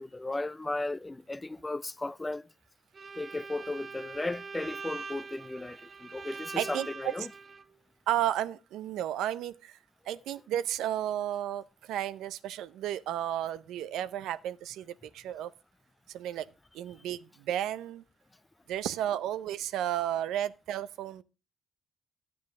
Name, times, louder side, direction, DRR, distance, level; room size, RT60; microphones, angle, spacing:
voice 1, 0.0-2.5 3.1-7.3, left 2 dB, 15° left, 0.4 m, -35 dB
Bowed string instrument, 2.9-7.6, right 4 dB, 35° right, 0.6 m, -43 dB
voice 2, 6.6-7.1 8.1-9.8 10.1-15.5 16.1-16.5 16.7-18.0 18.7-21.2, right 11 dB, 85° right, 0.5 m, -33 dB
11.0 x 8.6 x 3.6 m
cardioid pair, 90°, 0 cm